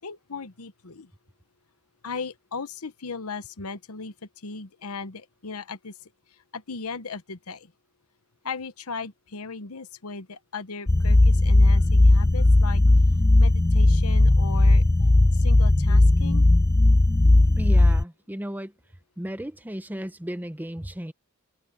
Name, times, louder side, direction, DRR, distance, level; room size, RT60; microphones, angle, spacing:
voice 1, 0.0-1.1 2.0-4.1 4.4-5.9 6.5-7.7 8.4-12.8 13.4-14.8 15.3-16.5, left 4 dB, 85° left, 1.0 m, -37 dB
sound 1, 10.9-18.0, left 2 dB, 15° left, 0.3 m, -17 dB
voice 2, 17.6-18.7 19.2-21.1, equal, 10° right, 0.8 m, -34 dB
head